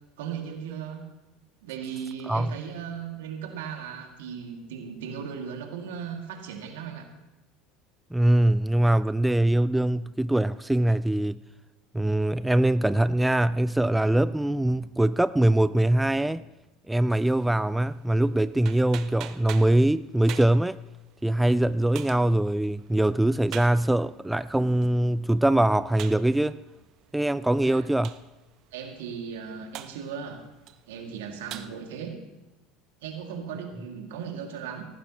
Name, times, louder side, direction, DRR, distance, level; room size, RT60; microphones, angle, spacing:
voice 1, 0.2-1.0 1.6-7.0 27.4-27.8 28.7-30.4 30.9-32.1 33.0-34.9, right 7 dB, 75° right, 2.2 m, -37 dB
voice 2, 8.1-11.4 11.9-16.4 16.9-20.8 21.2-26.6 27.1-28.1, right 1 dB, 5° right, 0.3 m, -23 dB
sound 1, 17.1-31.7, right 12 dB, 55° right, 0.8 m, -47 dB
18.0 x 14.5 x 3.0 m
hypercardioid pair, 75°, 0 cm